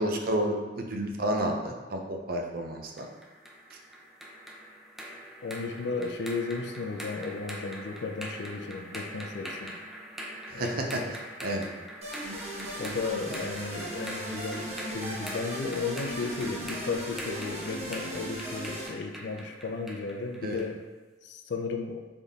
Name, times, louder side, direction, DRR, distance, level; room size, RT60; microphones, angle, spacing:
voice 1, 0.0-3.1 10.5-11.7 20.4-20.6, right 1 dB, 55° right, 3 dB, 0.6 m, -31 dB
sound 1, 3.0-20.8, equal, ahead, 0.5 m, -43 dB
voice 2, 5.4-9.8 10.5-11.1 12.8-20.8 21.2-22.0, left 4 dB, 65° left, 4 dB, 0.4 m, -34 dB
sound 2, 12.0-18.9, equal, 35° right, 1.0 m, -37 dB
4.0 x 3.7 x 3.5 m, 1.3 s
head